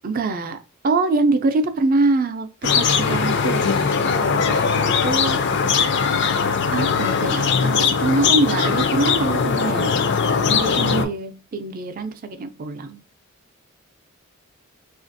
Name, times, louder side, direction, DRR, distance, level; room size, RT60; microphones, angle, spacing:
voice 1, 0.0-0.6 0.8-5.4 6.7-10.0 10.5-13.0, right 3 dB, 40° right, 8 dB, 0.4 m, -24 dB
sound 1, 2.6-11.0, left 5 dB, 50° left, 0.4 m, -20 dB
3.2 x 2.4 x 2.6 m, 0.32 s
head